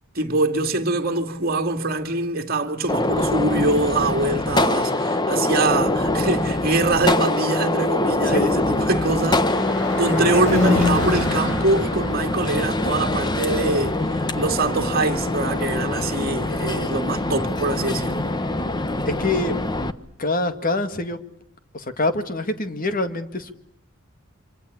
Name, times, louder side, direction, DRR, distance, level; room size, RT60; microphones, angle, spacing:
voice 1, 0.1-9.6 10.0-18.2, right 2 dB, 45° right, 2.4 m, -24 dB
Gunshot gunfire, 2.9-19.9, left 2 dB, 20° left, 1.1 m, -24 dB
Car passing by / Truck / Engine, 7.3-16.8, left 2 dB, 65° left, 6.6 m, -30 dB
voice 2, 19.1-19.6 20.2-21.2 21.7-23.5, left 2 dB, 40° left, 2.0 m, -25 dB
26.5 x 25.0 x 8.5 m
head